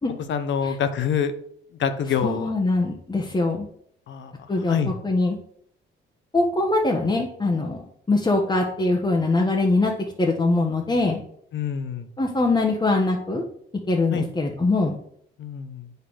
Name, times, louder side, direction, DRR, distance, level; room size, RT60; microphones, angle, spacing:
voice 1, 0.3-1.3 1.8-2.5 4.1-4.3 4.7-4.9 11.5-12.1 14.1-14.3 15.4-15.9, left 7 dB, 70° left, 10 dB, 1.1 m, -26 dB
voice 2, 2.2-3.7 4.5-5.4 6.3-9.9 10.2-11.2 12.2-13.4 13.9-15.0, left 2 dB, 20° left, -1 dB, 1.3 m, -22 dB
8.1 x 5.4 x 6.4 m, 0.67 s
cardioid pair, 90°, 20 cm